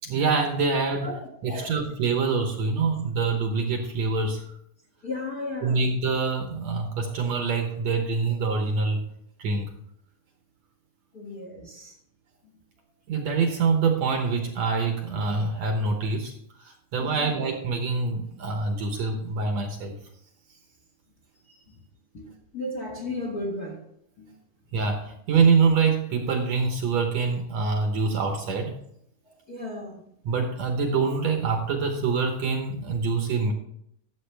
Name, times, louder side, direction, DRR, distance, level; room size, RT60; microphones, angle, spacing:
voice 1, 0.0-1.1 1.4-4.4 5.6-9.0 9.4-9.7 13.1-16.3 16.6-20.0 24.7-28.8 30.2-33.5, right 4 dB, 65° right, 3 dB, 1.9 m, -25 dB
voice 2, 5.0-5.8 6.9-7.1 11.1-12.0 17.0-17.3 18.5-18.6 22.1-23.8 24.2-24.3 29.5-30.0, left 2 dB, 40° left, 0 dB, 1.6 m, -35 dB
13.0 x 7.7 x 3.3 m, 0.72 s
omnidirectional pair, 3.9 m